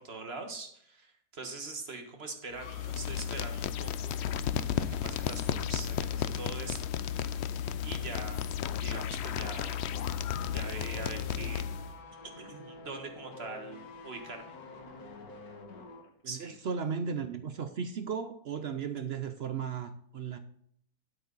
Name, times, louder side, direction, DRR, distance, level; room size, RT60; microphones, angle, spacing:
voice 1, 0.0-4.2 4.8-6.9 7.8-8.5 8.8-9.9 10.5-11.7 12.4-14.5 16.2-16.6, right 3 dB, 40° right, 4 dB, 1.7 m, -43 dB
sound 1, 2.6-12.0, left 9 dB, 85° left, 0.5 m, -33 dB
sound 2, 9.4-16.1 16.4-16.5, left 3 dB, 65° left, 1.9 m, -48 dB
voice 2, 16.2-20.4, right 6 dB, 60° right, 9 dB, 0.6 m, -35 dB
9.7 x 8.4 x 4.0 m, 0.68 s
omnidirectional pair, 1.7 m